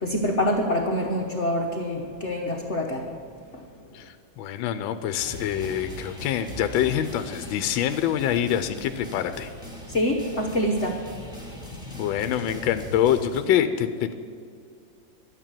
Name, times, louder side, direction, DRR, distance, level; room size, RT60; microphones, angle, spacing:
voice 1, 0.0-3.1 9.9-11.0, equal, 45° left, 1 dB, 1.1 m, -25 dB
voice 2, 3.9-9.5 12.0-14.1, left 10 dB, 80° left, 10 dB, 1.4 m, -25 dB
sound 1, 5.2-13.4, equal, ahead, 3.0 m, -40 dB
12.0 x 9.0 x 8.9 m, 2.3 s
omnidirectional pair, 2.1 m